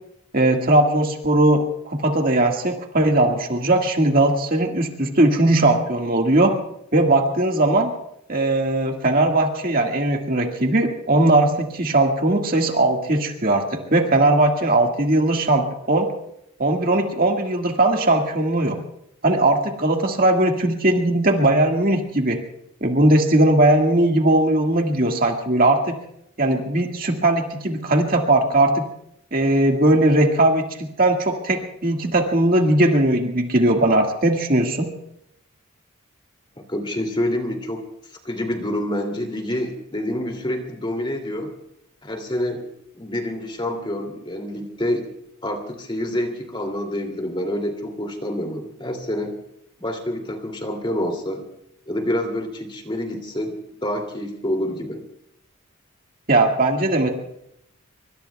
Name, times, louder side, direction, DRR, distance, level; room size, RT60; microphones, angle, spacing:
voice 1, 0.3-6.5 6.9-7.9 8.3-16.1 16.6-18.8 19.2-22.4 22.8-25.9 26.4-28.8 29.3-30.7 31.0-34.9 56.3-57.1, right 1 dB, 40° right, 2 dB, 1.9 m, -19 dB
voice 2, 36.6-37.8 38.1-41.5 42.0-42.7 42.9-45.0 45.4-49.4 49.8-51.4 51.9-55.0, left 1 dB, 25° left, 4 dB, 2.8 m, -27 dB
25.5 x 24.0 x 2.3 m, 0.76 s
head